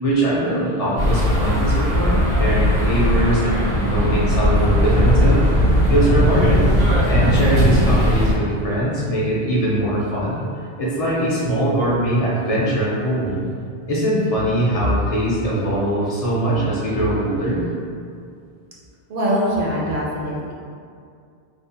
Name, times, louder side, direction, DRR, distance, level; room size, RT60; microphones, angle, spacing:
voice 1, 0.0-5.4 5.9-6.7 7.1-13.5 13.9-17.6, right 1 dB, 45° left, -7 dB, 0.5 m, -21 dB
sound 1, 1.0-8.3, equal, 80° right, 1.1 m, -18 dB
voice 2, 19.1-20.5, equal, 65° right, -5 dB, 0.7 m, -22 dB
2.6 x 2.0 x 2.6 m, 2.3 s
omnidirectional pair, 1.1 m